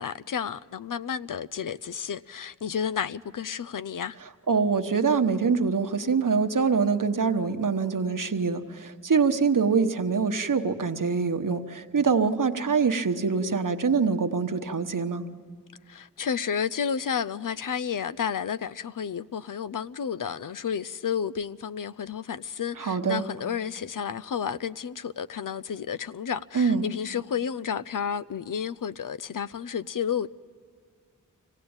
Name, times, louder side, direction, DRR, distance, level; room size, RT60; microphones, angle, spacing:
voice 1, 0.0-4.2 15.9-30.3, left 7 dB, 80° left, 0.6 m, -31 dB
voice 2, 4.5-15.2 22.8-23.2 26.5-26.8, right 5 dB, 75° right, 1.1 m, -24 dB
24.5 x 17.5 x 8.8 m
wide cardioid pair, 45°, 32 cm